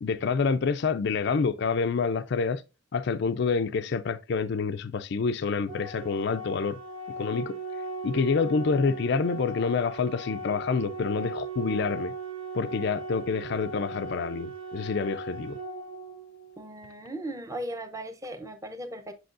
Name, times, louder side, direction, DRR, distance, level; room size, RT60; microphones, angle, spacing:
voice 1, 0.0-2.6 2.9-6.8 7.2-7.6 8.0-12.1 12.5-15.6, left 5 dB, 60° left, 0.4 m, -27 dB
Organ, 5.7-16.7, right 2 dB, 80° right, 1.3 m, -38 dB
voice 2, 16.6-19.1, right 1 dB, 15° right, 0.7 m, -37 dB
7.7 x 6.1 x 2.5 m
head